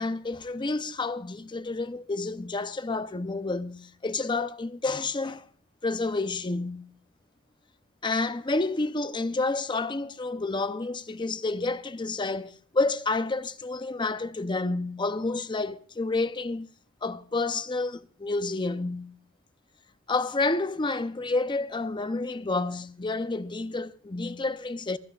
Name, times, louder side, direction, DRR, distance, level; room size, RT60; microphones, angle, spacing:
voice 1, 0.0-5.5 5.8-6.9 8.0-16.7 17.0-19.1 20.1-25.0, left 3 dB, 20° left, 0.6 m, -29 dB
26.5 x 15.5 x 2.4 m
head